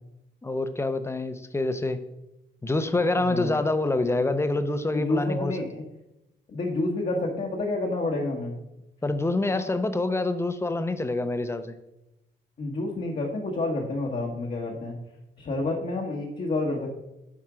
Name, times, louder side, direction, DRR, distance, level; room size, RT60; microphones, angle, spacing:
voice 1, 0.4-2.0 2.6-5.6 9.0-11.8, left 2 dB, 15° left, 10 dB, 0.6 m, -26 dB
voice 2, 4.9-5.8 6.5-8.6 12.6-15.0 15.4-16.9, left 2 dB, 45° left, -1 dB, 1.2 m, -29 dB
7.4 x 4.4 x 4.9 m, 0.92 s
cardioid pair, 90°, 20 cm